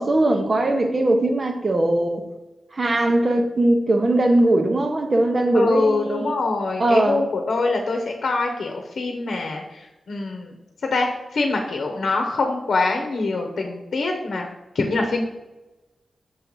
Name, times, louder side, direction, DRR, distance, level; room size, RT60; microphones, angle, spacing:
voice 1, 0.0-2.3 2.7-6.3 6.8-7.2, right 1 dB, 40° right, 0.9 m, -20 dB
voice 2, 5.5-10.5 10.9-14.5 14.7-15.3, left 3 dB, 75° left, 0.9 m, -24 dB
6.4 x 3.9 x 4.7 m
wide cardioid pair, 100°, 0 cm